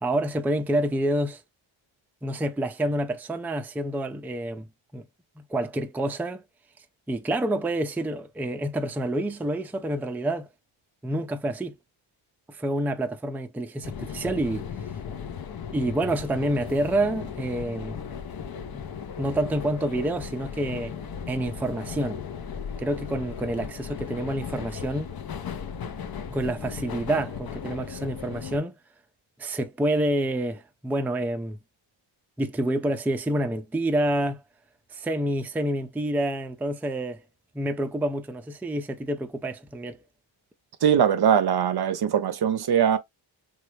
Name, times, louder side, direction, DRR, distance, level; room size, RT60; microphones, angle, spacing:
voice 1, 0.0-1.4 2.2-4.7 4.9-5.0 5.4-6.4 7.1-10.5 11.0-11.7 12.5-14.7 15.7-18.0 18.7-18.8 19.2-20.9 21.3-22.2 22.8-25.1 26.3-28.7 29.4-31.6 32.4-34.4 34.9-37.2 37.5-40.0, right 1 dB, 5° right, 0.4 m, -28 dB
sound 1, 13.8-28.6, left 7 dB, 50° left, 0.6 m, -36 dB
voice 2, 40.8-43.0, right 8 dB, 50° right, 0.6 m, -21 dB
3.0 x 2.4 x 3.1 m
cardioid pair, 50°, 49 cm